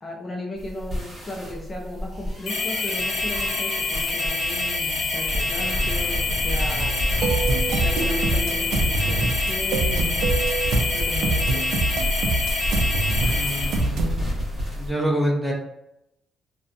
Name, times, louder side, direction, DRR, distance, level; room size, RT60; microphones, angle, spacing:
voice 1, 0.0-7.0 7.7-10.1 10.9-11.7, left 1 dB, 30° left, 0 dB, 0.5 m, -35 dB
sound 1, 0.6-14.9, equal, 25° right, 1.2 m, -30 dB
sound 2, 2.5-13.9, left 3 dB, 75° left, 0.8 m, -26 dB
sound 3, 6.8-14.2, right 3 dB, 75° right, 0.4 m, -25 dB
voice 2, 13.3-14.0 14.8-15.5, equal, 5° right, -2 dB, 0.6 m, -25 dB
2.4 x 2.2 x 2.6 m, 0.83 s
cardioid pair, 90°, 0 cm